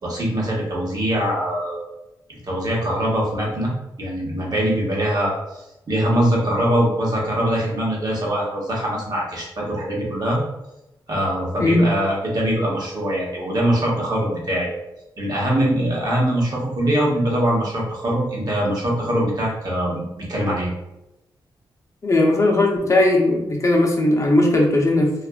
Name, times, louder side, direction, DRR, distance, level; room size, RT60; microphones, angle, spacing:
voice 1, 0.0-1.8 2.5-3.7 4.0-10.4 11.1-14.7 15.2-20.7, right 1 dB, 50° right, -3 dB, 0.9 m, -22 dB
voice 2, 22.0-25.1, left 2 dB, 35° left, 0 dB, 0.6 m, -17 dB
2.6 x 2.3 x 2.3 m, 0.93 s
cardioid pair, 75°, 9 cm